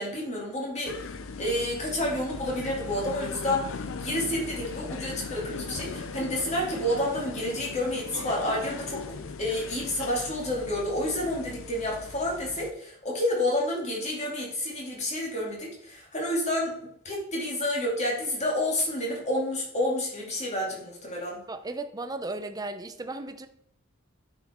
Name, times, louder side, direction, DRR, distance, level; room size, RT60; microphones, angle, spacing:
voice 1, 0.0-9.0 9.4-16.7 17.0-21.4, left 1 dB, 30° left, -2 dB, 2.5 m, -29 dB
sound 1, 0.8-12.7, left 4 dB, 65° left, 0.6 m, -38 dB
voice 2, 21.5-23.5, right 2 dB, 15° right, 9 dB, 0.5 m, -35 dB
9.2 x 5.0 x 4.4 m, 0.72 s
head